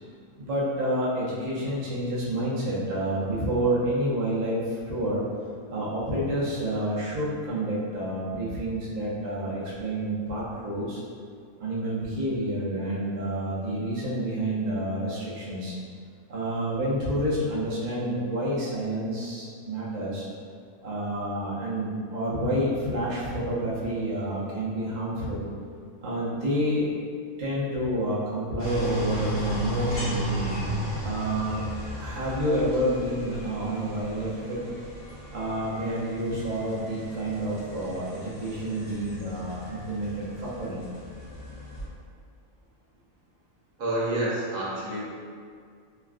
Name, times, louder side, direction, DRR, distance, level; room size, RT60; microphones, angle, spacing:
voice 1, 0.4-5.2 5.7-11.0 11.6-15.8 16.3-20.3 20.8-25.5 26.0-26.9 27.4-30.6 31.0-31.6 32.0-34.6 35.3-40.8, right 1 dB, 50° right, -8 dB, 0.5 m, -29 dB
sound 1, 28.6-41.8, right 1 dB, 55° left, 0.9 m, -35 dB
voice 2, 43.8-45.0, right 1 dB, 70° right, -7 dB, 1.1 m, -28 dB
3.2 x 2.3 x 2.4 m, 2.2 s
omnidirectional pair, 1.5 m